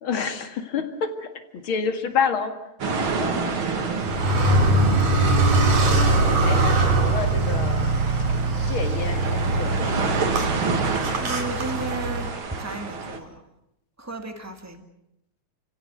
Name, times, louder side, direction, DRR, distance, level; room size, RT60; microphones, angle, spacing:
voice 1, 0.0-2.5 3.2-3.5 6.4-7.9 8.7-10.1, left 6 dB, 45° left, 7 dB, 2.6 m, -28 dB
sound 1, 2.8-13.2, right 4 dB, 45° right, 2.7 m, -29 dB
Car, 4.0-12.3, right 2 dB, 85° right, 5.4 m, -22 dB
voice 2, 11.2-12.3 12.6-13.3 14.0-14.8, right 2 dB, 5° right, 5 dB, 1.4 m, -34 dB
29.5 x 16.5 x 8.0 m, 0.86 s
omnidirectional pair, 3.4 m